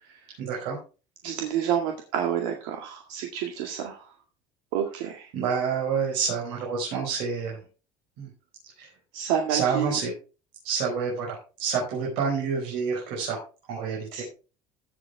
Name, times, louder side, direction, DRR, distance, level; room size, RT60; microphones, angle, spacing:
voice 1, 0.4-0.8 5.3-7.6 8.2-8.3 8.8-8.9 9.5-10.1 10.6-13.4 13.7-14.2, right 6 dB, 60° right, -2 dB, 5.1 m, -28 dB
voice 2, 1.2-4.1 4.7-5.3 9.1-10.0 14.1-14.2, right 9 dB, 75° right, 3 dB, 2.1 m, -29 dB
15.0 x 7.7 x 3.5 m, 0.34 s
cardioid pair, 175°, 11 cm